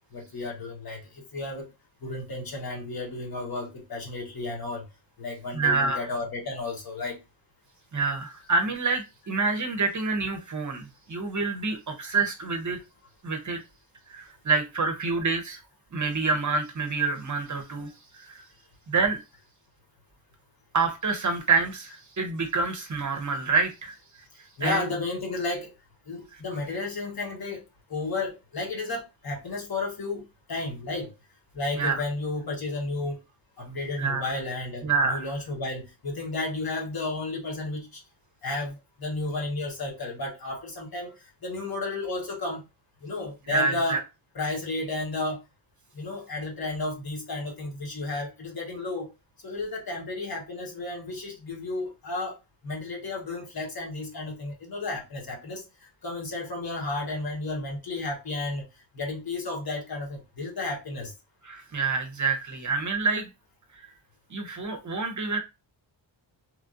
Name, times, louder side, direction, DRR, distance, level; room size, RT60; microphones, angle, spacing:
voice 1, 0.1-1.7 2.0-4.8 5.2-7.2 24.6-25.7 26.1-27.6 27.9-31.1 31.5-33.2 33.6-38.0 38.4-41.1 41.4-42.6 43.0-44.0 44.3-45.4 45.9-49.1 49.4-52.3 52.6-58.6 58.9-61.1, left 2 dB, 50° left, 1.2 m, -33 dB
voice 2, 5.5-6.1 7.9-12.8 13.2-13.6 14.1-15.6 15.9-18.4 18.9-19.2 20.7-23.9 24.6-24.9 31.8-32.0 34.0-34.3 34.8-35.3 43.5-44.0 61.4-63.3 63.7-63.9 64.3-65.4, right 4 dB, 40° right, 0.6 m, -27 dB
3.0 x 2.5 x 2.5 m
wide cardioid pair, 105°, 46 cm